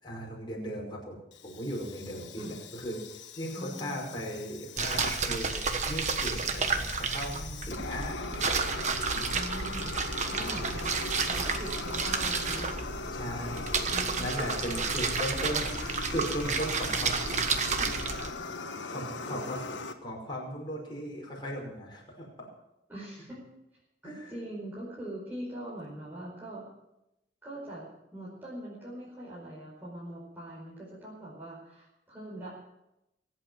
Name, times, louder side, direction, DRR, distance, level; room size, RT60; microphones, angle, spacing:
voice 1, 0.0-9.3 10.3-10.8 13.1-13.8 14.2-17.3 17.7-18.0 18.9-19.6 20.0-22.5 24.0-24.1, equal, 25° left, -2 dB, 5.5 m, -37 dB
Fire, 1.3-19.9, left 3 dB, 80° left, 1.3 m, -40 dB
voice 2, 3.5-4.1 9.3-10.0 10.3-12.8 13.4-13.6 13.9-15.1 19.2-19.7 22.9-23.4 24.0-26.6 27.4-32.5, right 1 dB, 10° right, -8 dB, 5.0 m, -43 dB
sound 1, 4.8-18.3, right 5 dB, 40° right, 1.3 m, -31 dB
24.0 x 8.4 x 6.2 m, 0.90 s
head